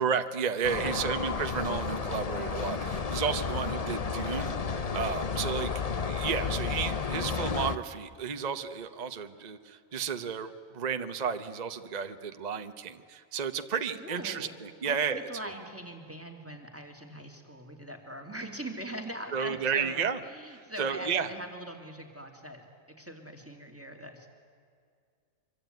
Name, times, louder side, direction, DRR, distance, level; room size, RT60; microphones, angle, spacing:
voice 1, 0.0-4.5 4.9-5.7 6.0-15.5 19.3-20.2 20.6-21.3, right 6 dB, 35° right, 8 dB, 0.9 m, -32 dB
sound 1, 0.6-7.8, left 5 dB, 35° left, 0.8 m, -32 dB
voice 2, 0.7-1.1 5.5-6.0 13.9-14.5 14.8-22.6 23.0-24.3, right 1 dB, 10° right, 3 dB, 2.9 m, -42 dB
25.0 x 24.0 x 9.4 m, 2.2 s
omnidirectional pair, 1.4 m